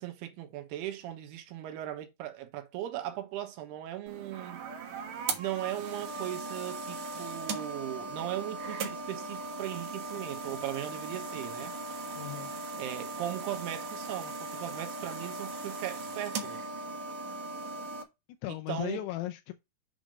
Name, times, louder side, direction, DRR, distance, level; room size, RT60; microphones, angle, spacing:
voice 1, 0.0-4.6 5.4-11.7 12.8-16.7 18.5-19.0, right 13 dB, 85° right, 2.9 m, -38 dB
sound 1, 4.1-18.0, right 3 dB, 60° right, 2.1 m, -38 dB
voice 2, 12.1-12.5 18.4-19.5, left 15 dB, 90° left, 2.8 m, -36 dB
7.3 x 3.8 x 5.1 m
omnidirectional pair, 4.6 m